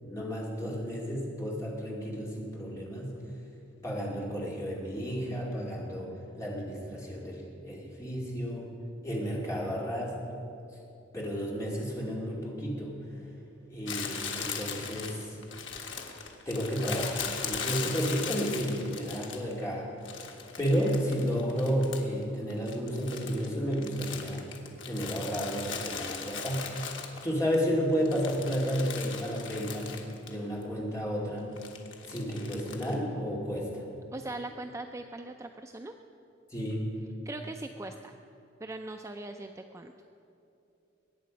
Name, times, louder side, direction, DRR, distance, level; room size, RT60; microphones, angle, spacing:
voice 1, 0.0-3.1 3.8-6.1 6.3-8.7 9.0-10.1 11.1-12.9 13.7-15.3 16.5-19.9 20.6-24.4 24.9-26.6 27.2-30.0 30.3-31.5 32.1-33.8 36.5-36.9, equal, 15° left, -4 dB, 2.4 m, -32 dB
Crumpling crinkling, 13.9-19.6 20.1-22.2 22.5-27.6 27.9-30.4 30.6-30.7 31.6-32.9, left 6 dB, 85° left, 1.5 m, -39 dB
voice 2, 34.1-35.9 37.3-38.1 38.6-39.9, right 2 dB, 15° right, 5 dB, 0.4 m, -40 dB
21.5 x 9.1 x 5.2 m, 2.8 s
head